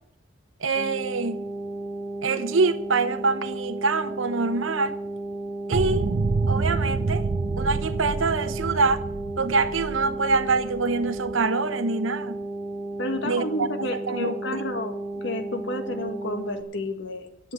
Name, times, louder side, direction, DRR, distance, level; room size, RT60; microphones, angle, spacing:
voice 1, 0.6-1.4 2.2-5.0 5.7-6.1 6.5-7.2 7.6-9.0 9.4-12.4 13.2-13.7 14.1-14.3, right 4 dB, 85° right, 0.9 m, -25 dB
sound 1, 0.7-16.6, right 2 dB, 10° left, 2.2 m, -34 dB
sound 2, 5.7-11.4, right 3 dB, 45° right, 0.4 m, -28 dB
voice 2, 13.0-15.0 15.2-17.5, left 1 dB, 65° left, 1.6 m, -31 dB
11.0 x 7.8 x 9.3 m
head